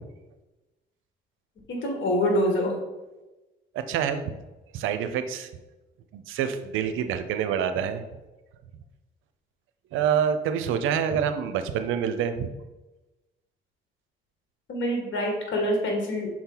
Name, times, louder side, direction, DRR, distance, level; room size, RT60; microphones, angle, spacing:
voice 1, 1.7-2.7 14.7-16.3, equal, 70° left, 1 dB, 1.8 m, -25 dB
voice 2, 3.7-4.2 4.7-5.5 6.1-8.0 9.9-12.5, right 8 dB, 90° right, 10 dB, 0.6 m, -26 dB
6.2 x 4.3 x 3.9 m, 1.1 s
cardioid pair, 90°, 20 cm